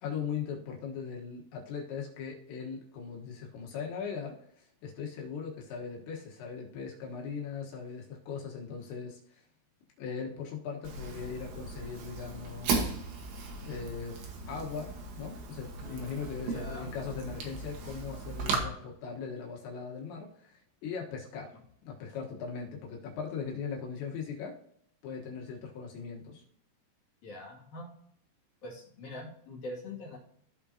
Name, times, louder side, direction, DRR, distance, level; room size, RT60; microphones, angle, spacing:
voice 1, 0.0-9.4 10.0-13.0 13.6-24.6 25.0-26.4, left 6 dB, 70° left, -1 dB, 3.3 m, -39 dB
Fire, 10.8-18.6, right 4 dB, 65° right, 2.6 m, -37 dB
voice 2, 16.4-16.9 27.2-27.9 28.6-30.2, left 1 dB, 45° left, -5 dB, 2.9 m, -43 dB
15.5 x 5.4 x 2.8 m, 0.69 s
omnidirectional pair, 5.9 m